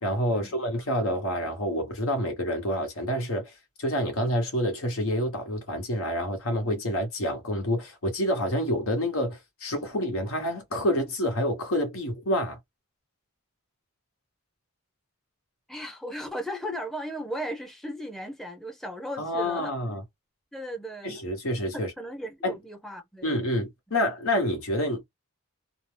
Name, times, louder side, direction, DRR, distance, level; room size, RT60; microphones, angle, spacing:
voice 1, 0.0-3.5 3.8-12.6 19.2-20.0 21.0-21.9 22.4-22.6 23.2-25.0, equal, 75° left, 1.1 m, -28 dB
voice 2, 15.7-20.0 20.5-21.1 21.7-23.3, equal, ahead, 0.6 m, -36 dB
2.7 x 2.0 x 3.3 m
head